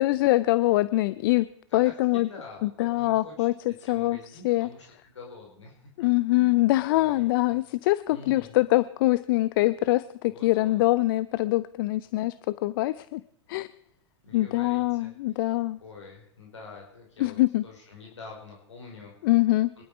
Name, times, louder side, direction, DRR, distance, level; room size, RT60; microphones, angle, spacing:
voice 1, 0.0-1.5 1.7-2.3 2.6-4.2 4.4-4.7 6.0-12.4 12.6-13.2 13.5-13.7 14.3-15.8 17.2-17.6 19.2-19.7, left 18 dB, 50° left, 17 dB, 0.6 m, -24 dB
voice 2, 1.7-5.9 6.3-6.6 6.9-7.6 8.1-8.6 10.2-10.8 14.2-15.4 15.8-17.4 17.6-19.1 19.8-19.9, left 4 dB, 75° left, -1 dB, 5.0 m, -46 dB
24.0 x 12.0 x 4.9 m, 0.68 s
figure-of-eight pair, 105°, 15 cm